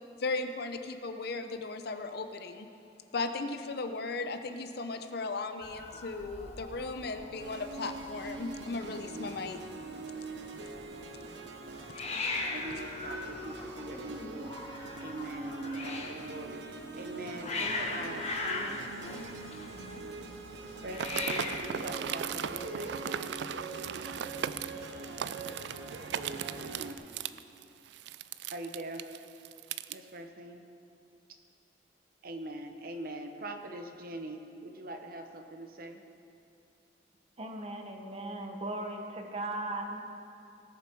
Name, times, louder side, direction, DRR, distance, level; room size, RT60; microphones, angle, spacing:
voice 1, 0.2-2.7 3.1-9.6, left 3 dB, 60° left, 8 dB, 0.7 m, -36 dB
Hiss, 5.6-22.9, left 3 dB, 40° left, 1.1 m, -40 dB
sound 1, 7.4-26.9, right 3 dB, 85° right, 0.8 m, -43 dB
voice 2, 12.5-18.8 20.8-23.4 28.5-29.0 29.9-30.6 32.2-36.0, right 1 dB, 55° right, 6 dB, 0.9 m, -43 dB
sound 2, 20.9-30.0, right 9 dB, 70° right, 0.3 m, -38 dB
voice 3, 37.4-40.0, right 2 dB, 35° right, 3 dB, 1.1 m, -37 dB
18.5 x 6.9 x 4.6 m, 2.6 s
head